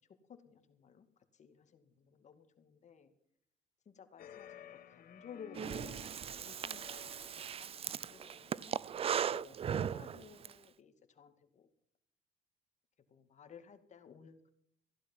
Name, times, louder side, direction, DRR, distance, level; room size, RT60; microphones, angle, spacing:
voice 1, 0.3-1.1 1.3-3.1 3.9-6.0 6.3-7.1 7.4-8.7 9.2-11.6 13.1-14.5, left 7 dB, 45° left, 8 dB, 2.2 m, -56 dB
sound 1, 4.2-8.9, left 9 dB, 60° left, 1.1 m, -55 dB
Breathing, 5.5-10.5, right 8 dB, 35° right, 0.5 m, -38 dB
15.5 x 11.5 x 5.7 m, 0.69 s
cardioid pair, 110°, 17 cm